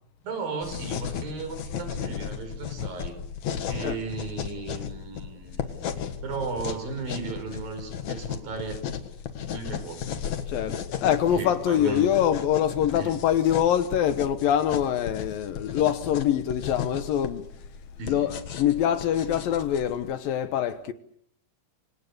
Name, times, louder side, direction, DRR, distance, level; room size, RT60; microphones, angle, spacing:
voice 1, 0.2-3.1 3.7-8.8 9.5-10.0 10.5-10.7 11.3-12.0 12.9-13.2 18.0-18.3, right 4 dB, 65° right, 6.7 m, -35 dB
sound 1, 0.6-20.1, left 8 dB, 55° left, 2.6 m, -35 dB
voice 2, 10.5-17.4 18.1-20.9, left 10 dB, 70° left, 2.8 m, -24 dB
28.5 x 25.5 x 6.7 m
omnidirectional pair, 4.4 m